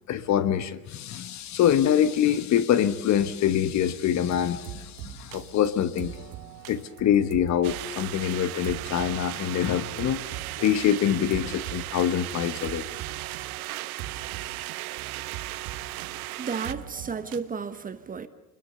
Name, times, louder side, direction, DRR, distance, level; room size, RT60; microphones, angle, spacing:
voice 1, 0.1-6.2 6.7-10.2 10.6-12.9, left 10 dB, 35° left, 12 dB, 1.3 m, -25 dB
sound 1, 4.2-17.4, right 12 dB, 50° right, 1.6 m, -41 dB
sound 2, 7.6-16.7, right 18 dB, 70° right, 1.0 m, -36 dB
voice 2, 16.4-18.3, right 5 dB, 20° right, 11 dB, 1.1 m, -33 dB
25.0 x 21.5 x 6.8 m, 1.0 s
hypercardioid pair, 105°, 45 cm